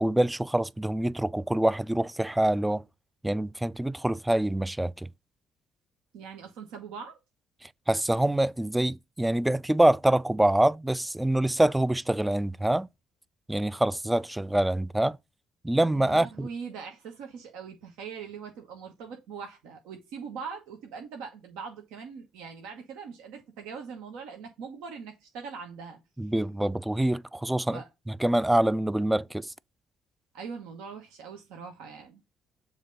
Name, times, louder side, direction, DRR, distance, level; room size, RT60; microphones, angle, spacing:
voice 1, 0.0-2.8 3.2-5.1 7.9-12.9 13.5-15.2 15.6-16.5 26.2-27.8 28.2-29.5, right 1 dB, 10° right, 0.3 m, -25 dB
voice 2, 6.1-7.2 15.9-26.0 27.7-27.9 30.3-32.2, right 6 dB, 80° right, 1.1 m, -41 dB
7.2 x 2.8 x 5.1 m
hypercardioid pair, 60°, 0 cm